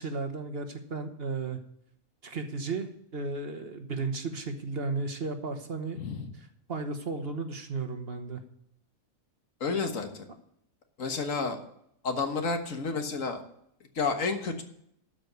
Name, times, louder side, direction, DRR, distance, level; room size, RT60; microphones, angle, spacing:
voice 1, 0.0-1.6 2.2-6.0 6.7-8.4, right 3 dB, 50° right, 6 dB, 1.3 m, -34 dB
voice 2, 5.9-6.3 9.6-10.3 11.0-11.6 12.0-13.4 14.0-14.6, left 4 dB, 70° left, 6 dB, 1.7 m, -30 dB
12.5 x 5.2 x 8.0 m, 0.72 s
omnidirectional pair, 1.4 m